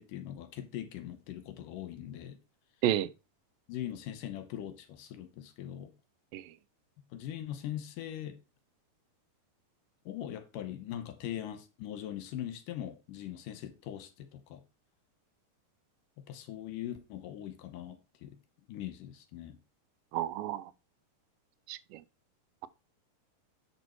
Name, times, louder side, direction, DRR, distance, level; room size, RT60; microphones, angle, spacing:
voice 1, 0.0-2.4 3.7-5.9 7.1-8.4 10.1-14.6 16.3-18.4 18.7-19.6, left 11 dB, 80° left, 2.6 m, -41 dB
voice 2, 20.1-20.7 21.7-22.0, right 12 dB, 85° right, 2.3 m, -31 dB
8.5 x 5.4 x 4.5 m
omnidirectional pair, 3.9 m